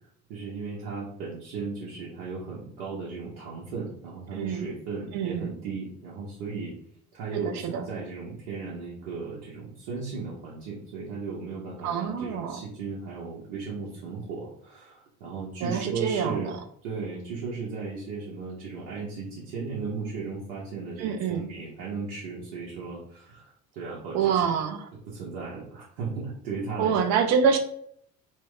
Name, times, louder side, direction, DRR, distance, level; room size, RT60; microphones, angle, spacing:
voice 1, 0.3-6.7 7.1-16.6 16.8-24.4 25.1-27.1, right 4 dB, 60° right, -5 dB, 0.8 m, -36 dB
voice 2, 4.3-4.7 5.1-5.5 7.3-7.8 11.8-12.6 15.6-16.5 21.0-21.5 24.1-24.9 26.8-27.6, right 7 dB, 40° right, 5 dB, 0.5 m, -26 dB
2.2 x 2.0 x 3.5 m, 0.66 s
figure-of-eight pair, 55°, 46 cm